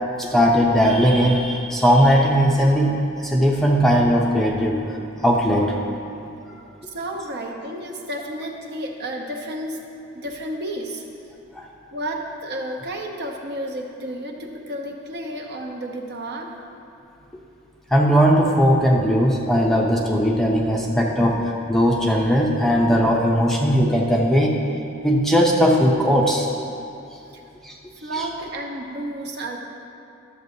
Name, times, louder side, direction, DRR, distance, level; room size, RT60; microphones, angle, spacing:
voice 1, 0.2-4.8 5.2-5.8 11.6-11.7 17.9-24.6 25.0-26.5 27.6-27.8 28.1-28.3, equal, ahead, -2 dB, 0.5 m, -18 dB
voice 2, 6.8-9.8 10.1-11.0 11.9-16.5 27.3-27.4 28.0-29.6, right 1 dB, 50° right, 1 dB, 0.8 m, -31 dB
12.0 x 7.3 x 2.7 m, 2.7 s
head